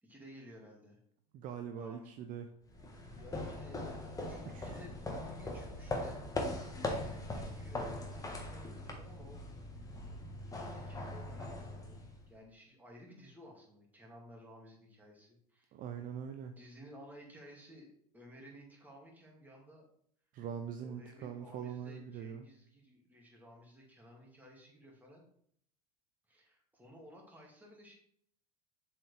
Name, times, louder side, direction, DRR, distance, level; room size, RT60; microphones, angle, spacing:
voice 1, 0.0-1.0 1.7-2.2 3.1-6.3 6.8-9.8 10.4-12.0 12.3-15.7 16.6-19.8 20.8-25.2 26.3-27.9, equal, 10° right, -2 dB, 2.3 m, -56 dB
voice 2, 1.3-2.5 4.5-4.8 15.7-16.6 20.3-22.4, right 8 dB, 40° right, 7 dB, 0.6 m, -43 dB
sound 1, 2.7-12.3, left 1 dB, 15° left, 1.4 m, -41 dB
7.1 x 4.5 x 3.4 m, 0.65 s
hypercardioid pair, 80°, 21 cm